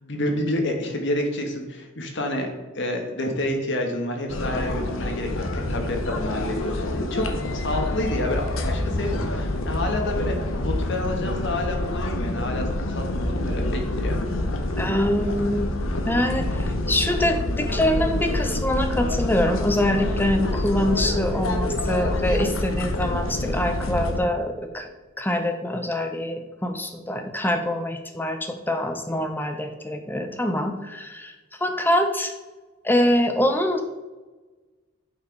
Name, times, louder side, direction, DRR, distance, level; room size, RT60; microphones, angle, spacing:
voice 1, 0.0-2.5 2.7-7.2 7.5-14.2, left 1 dB, 60° left, 3 dB, 1.4 m, -29 dB
sound 1, 4.3-24.2, left 1 dB, 75° left, 1.0 m, -27 dB
voice 2, 14.7-15.7 16.1-24.9 25.2-31.3 31.6-32.3 32.8-33.8, left 1 dB, 10° left, 6 dB, 0.7 m, -24 dB
8.6 x 4.6 x 4.6 m, 1.2 s
head